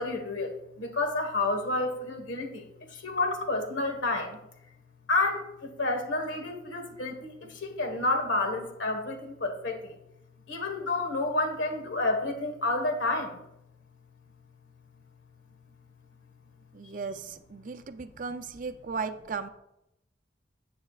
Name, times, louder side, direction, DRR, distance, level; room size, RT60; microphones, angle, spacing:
voice 1, 0.0-4.4 5.1-9.9 10.5-13.4, left 2 dB, 90° left, 5 dB, 1.5 m, -30 dB
voice 2, 16.7-19.5, right 5 dB, 45° right, 9 dB, 0.5 m, -36 dB
11.5 x 7.7 x 2.4 m, 0.86 s
head